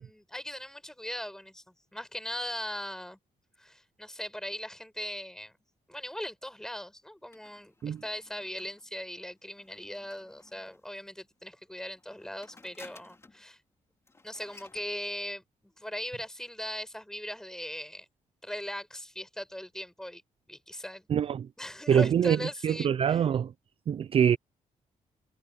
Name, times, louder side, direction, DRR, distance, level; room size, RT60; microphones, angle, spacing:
voice 1, 0.0-1.6 1.9-3.2 3.6-5.5 5.9-13.6 14.2-15.4 15.8-18.0 18.4-20.2 20.5-21.0 21.6-23.2, left 1 dB, 5° left, 4.8 m, -39 dB
sound 1, 7.3-11.0 11.9-13.5 13.8-13.9 14.1-14.9, left 3 dB, 20° left, 3.2 m, -56 dB
voice 2, 21.1-21.5 21.9-22.4 22.6-23.5 23.9-24.4, right 8 dB, 45° right, 0.4 m, -24 dB
cardioid pair, 130°, 14 cm